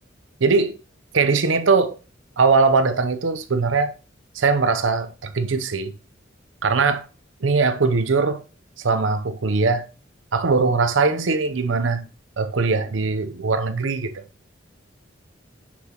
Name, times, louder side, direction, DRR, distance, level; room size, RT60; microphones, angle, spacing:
voice 1, 0.4-0.8 1.1-2.0 2.4-3.9 4.3-5.9 6.6-7.0 7.4-8.4 8.8-9.9 10.3-12.0 12.4-14.2, right 4 dB, 80° right, 0.7 m, -20 dB
6.1 x 5.7 x 2.9 m
head